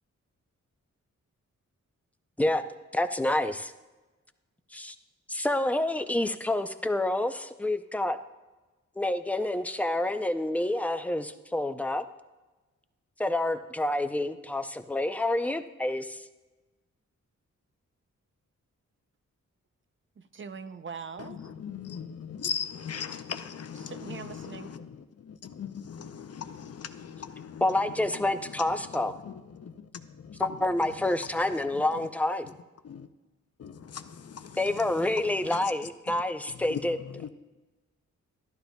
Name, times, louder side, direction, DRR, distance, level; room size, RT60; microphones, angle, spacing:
voice 1, 2.9-3.7 4.7-4.9 5.3-8.2 9.0-12.0 13.2-16.2 27.6-29.1 30.4-32.5 34.6-37.0, left 1 dB, 5° left, 9 dB, 0.5 m, -28 dB
voice 2, 20.2-21.5 23.7-24.7, right 5 dB, 40° right, 10 dB, 0.5 m, -42 dB
voice 3, 21.2-24.9 25.2-27.6 29.2-30.6 32.8-33.1 33.6-34.7 35.5-35.6 36.7-36.8 37.1-37.3, left 7 dB, 55° left, 9 dB, 0.6 m, -38 dB
12.0 x 11.5 x 2.3 m, 1.2 s
cardioid pair, 75°, 30 cm